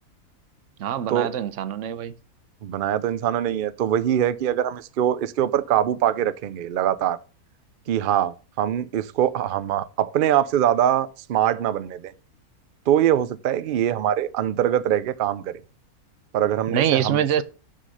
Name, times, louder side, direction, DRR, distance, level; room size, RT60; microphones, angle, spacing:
voice 1, 0.8-2.1 16.7-17.4, right 9 dB, 65° right, 0.9 m, -24 dB
voice 2, 2.6-7.2 7.9-12.1 12.9-15.6 16.3-17.2, right 10 dB, 85° right, 0.4 m, -23 dB
6.3 x 5.9 x 6.3 m
omnidirectional pair, 1.6 m